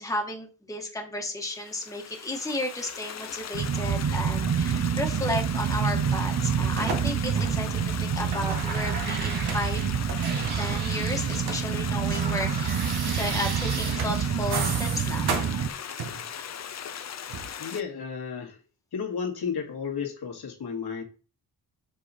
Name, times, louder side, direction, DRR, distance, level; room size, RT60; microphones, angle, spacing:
voice 1, 0.0-9.8 10.6-15.3, left 1 dB, 10° left, 1.4 m, -33 dB
Stream, 1.5-17.8, left 8 dB, 45° left, 0.6 m, -38 dB
sound 1, 3.5-15.7, right 7 dB, 50° right, 0.7 m, -27 dB
sound 2, 6.1-7.8 8.1-11.6 11.9-16.3 17.3-17.5, right 4 dB, 90° right, 1.5 m, -35 dB
voice 2, 17.6-18.6 18.9-21.0, left 6 dB, 80° left, 2.1 m, -33 dB
6.8 x 5.3 x 4.2 m
wide cardioid pair, 150°, 38 cm